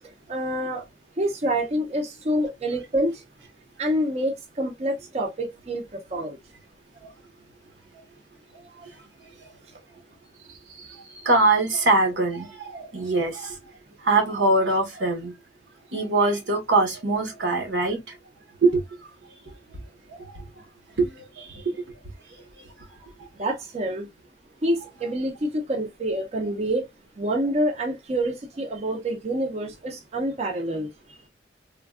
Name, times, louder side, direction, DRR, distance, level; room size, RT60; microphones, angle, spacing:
voice 1, 0.3-0.8 1.2-3.2 3.8-6.4 23.4-24.1 24.6-26.9 27.2-30.9, right 1 dB, 35° right, 0.5 m, -27 dB
voice 2, 11.2-13.6 14.0-15.3 15.9-18.0 18.6-18.8 20.1-20.2 21.0-21.1 21.4-21.9, right 2 dB, 75° right, 0.8 m, -22 dB
3.3 x 2.2 x 2.3 m
head